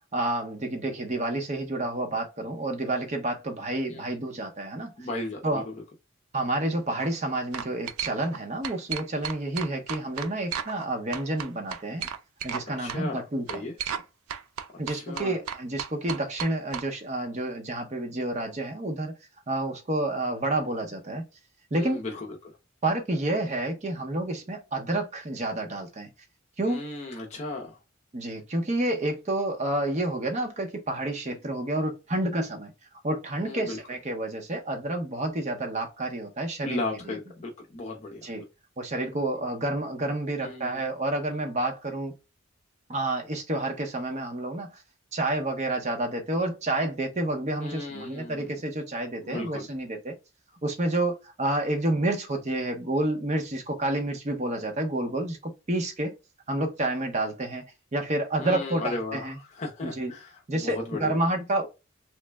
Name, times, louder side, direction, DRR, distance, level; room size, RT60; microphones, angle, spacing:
voice 1, 0.1-4.9 5.4-5.7 6.3-12.1 12.4-14.0 14.8-19.2 19.5-21.3 21.7-22.0 22.8-26.1 26.6-26.8 28.1-32.7 33.0-37.1 38.2-38.4 38.8-42.1 42.9-44.8 45.1-50.1 50.6-56.1 56.5-59.4 59.8-60.1 60.5-61.7, right 1 dB, 35° right, 0.6 m, -29 dB
voice 2, 5.0-5.8 12.8-13.2 13.5-13.7 14.9-15.3 21.7-22.6 26.6-27.7 33.5-33.8 36.6-38.4 40.4-40.8 47.6-48.5 49.2-49.7 58.4-61.2, left 2 dB, 35° left, 0.5 m, -35 dB
sound 1, 6.8-7.1 7.5-8.4 8.6-10.9 11.1-12.6 12.9-13.0 13.5-14.0 14.3-16.9, right 8 dB, 90° right, 0.4 m, -34 dB
3.1 x 2.1 x 3.3 m
head